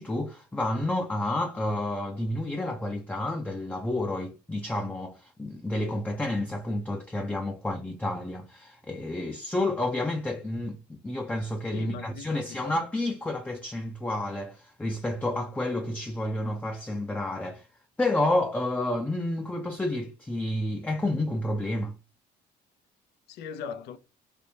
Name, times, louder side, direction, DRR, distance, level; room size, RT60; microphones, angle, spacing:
voice 1, 0.0-17.7 18.0-22.0, left 1 dB, 10° left, 0.4 m, -30 dB
voice 2, 11.7-12.8 23.3-24.0, left 7 dB, 80° left, 0.6 m, -39 dB
3.4 x 2.6 x 2.7 m
cardioid pair, 110°, 17 cm